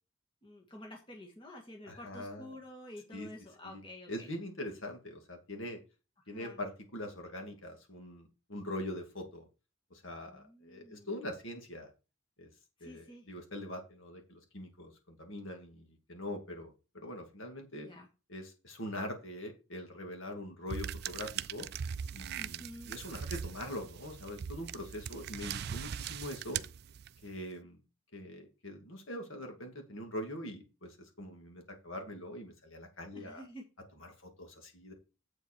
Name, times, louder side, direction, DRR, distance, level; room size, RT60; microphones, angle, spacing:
voice 1, 0.4-4.3 6.2-6.6 10.3-11.1 12.8-13.3 17.8-18.1 22.4-22.9 33.1-33.6, left 1 dB, 25° left, 1 dB, 1.8 m, -50 dB
voice 2, 1.9-2.5 3.1-3.3 3.6-3.8 4.1-5.8 6.3-9.5 9.9-11.9 12.4-12.5 12.8-17.9 18.3-21.7 22.1-26.6 27.2-27.8 28.1-33.4 34.2-34.9, left 1 dB, 65° left, 4 dB, 2.3 m, -43 dB
sound 1, 20.7-27.3, right 8 dB, 50° right, 0.3 m, -40 dB
7.9 x 7.4 x 4.5 m, 0.31 s
head